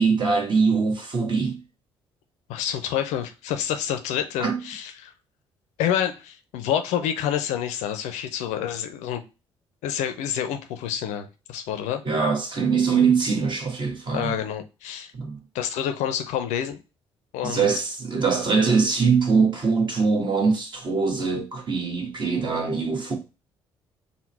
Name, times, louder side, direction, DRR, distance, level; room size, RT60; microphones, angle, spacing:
voice 1, 0.0-1.6 4.4-4.6 12.0-14.4 15.1-15.4 17.4-23.2, right 5 dB, 35° right, 1.1 m, -22 dB
voice 2, 2.5-5.1 5.8-9.2 9.8-12.0 14.1-15.1 15.5-16.8 17.3-17.7, left 10 dB, 60° left, 0.5 m, -28 dB
3.7 x 2.1 x 4.1 m
figure-of-eight pair, 45°, 14 cm